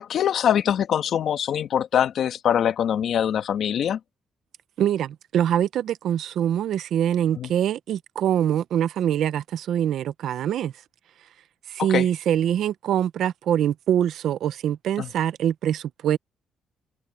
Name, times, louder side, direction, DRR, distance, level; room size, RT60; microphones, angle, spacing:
voice 1, 0.0-4.0 7.4-7.5 11.9-12.1 15.0-15.1, left 9 dB, 65° left, 1.8 m, -23 dB
voice 2, 4.8-10.7 11.7-16.2, right 10 dB, 75° right, 0.8 m, -24 dB
open air
cardioid pair, 90°, 0 cm